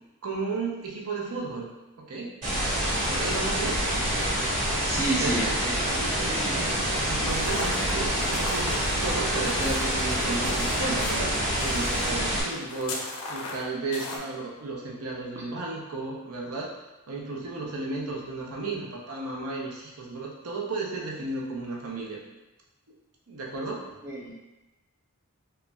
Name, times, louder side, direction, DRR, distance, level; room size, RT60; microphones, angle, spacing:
voice 1, 0.2-1.7 2.0-2.4 3.1-3.8 5.2-5.6 6.0-6.7 7.1-16.7 17.1-22.2 23.3-23.9, right 3 dB, 75° right, -2 dB, 0.7 m, -34 dB
sound 1, 2.4-12.4, equal, 35° right, 1.4 m, -27 dB
voice 2, 4.1-4.4 4.8-6.0 6.3-6.6 24.0-24.3, right 2 dB, 15° right, -5 dB, 0.4 m, -31 dB
sound 2, 7.3-14.2, left 2 dB, 70° left, 0.5 m, -38 dB
5.3 x 2.2 x 2.3 m, 1.1 s
head